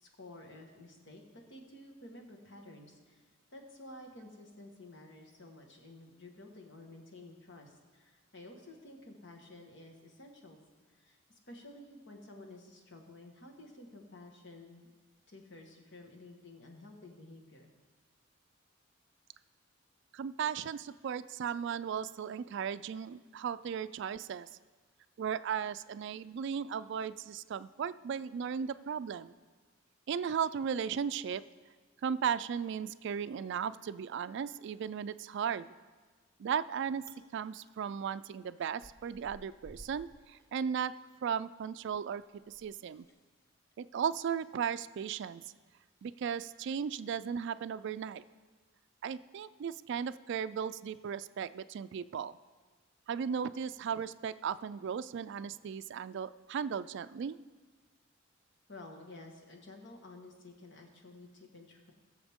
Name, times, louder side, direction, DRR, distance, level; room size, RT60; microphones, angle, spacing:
voice 1, 0.0-3.2 3.5-10.6 10.9-14.9 15.3-17.7 58.7-61.9, left 2 dB, 65° left, 2 dB, 1.5 m, -52 dB
voice 2, 20.1-24.5 25.2-29.3 30.1-31.4 32.0-35.7 36.4-37.0 37.3-40.9 41.2-43.1 43.8-45.4 46.0-48.2 49.0-52.3 53.1-57.4, right 7 dB, 60° right, 15 dB, 0.3 m, -36 dB
Chewing mastication, 36.2-36.7 36.9-37.2 37.6-41.4 41.7-47.1, equal, 15° left, 0.9 m, -60 dB
20.0 x 7.0 x 3.6 m, 1.4 s
head